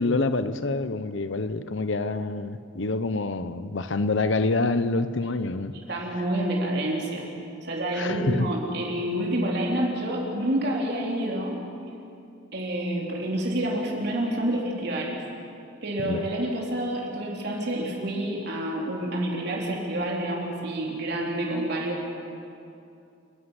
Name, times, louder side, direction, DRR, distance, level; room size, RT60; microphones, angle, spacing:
voice 1, 0.0-5.7 7.9-8.5 16.0-16.3, left 3 dB, 65° left, 12 dB, 0.8 m, -26 dB
voice 2, 5.9-7.2 7.6-11.6 12.5-15.2 15.8-22.1, right 1 dB, 55° right, -2 dB, 3.9 m, -28 dB
29.0 x 11.5 x 9.9 m, 2.6 s
head